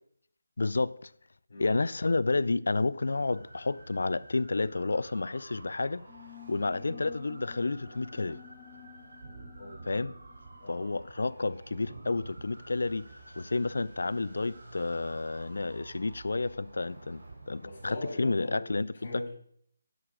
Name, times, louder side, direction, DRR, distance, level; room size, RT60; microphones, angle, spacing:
voice 1, 0.6-1.1 1.6-6.0 6.5-8.4 9.9-10.1 10.7-13.1 13.4-18.9, left 3 dB, 75° left, 0.4 m, -30 dB
sound 1, 3.3-18.0, right 2 dB, 70° right, 3.7 m, -49 dB
sound 2, 6.1-11.3, left 16 dB, 10° left, 0.8 m, -53 dB
voice 2, 17.6-19.3, left 2 dB, 55° left, 4.3 m, -41 dB
11.0 x 6.5 x 5.0 m
figure-of-eight pair, 170°, 0 cm